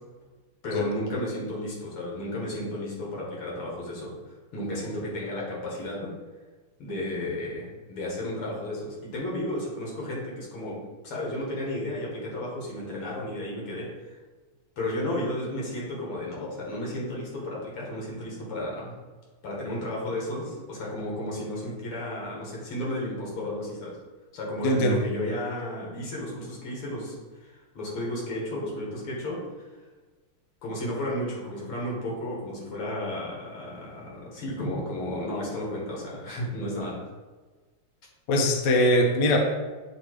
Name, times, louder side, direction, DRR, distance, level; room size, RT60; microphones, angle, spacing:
voice 1, 0.6-6.1 6.8-10.8 11.0-14.2 14.8-18.9 19.4-24.0 24.3-29.7 30.6-37.1, left 1 dB, 85° left, -3 dB, 2.6 m, -33 dB
voice 2, 24.6-25.0 34.6-34.7 38.3-39.4, equal, 65° left, 2 dB, 1.2 m, -22 dB
7.8 x 2.9 x 4.6 m, 1.3 s
omnidirectional pair, 2.4 m